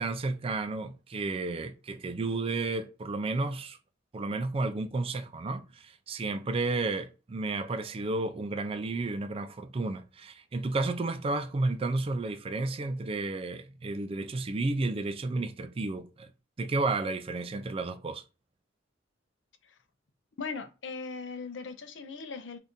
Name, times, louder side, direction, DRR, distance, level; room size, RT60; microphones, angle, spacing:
voice 1, 0.0-3.8 4.1-16.3 16.6-18.2, right 3 dB, 30° right, 0.4 m, -32 dB
voice 2, 20.4-22.6, left 4 dB, 75° left, 0.6 m, -39 dB
2.7 x 2.5 x 3.4 m
head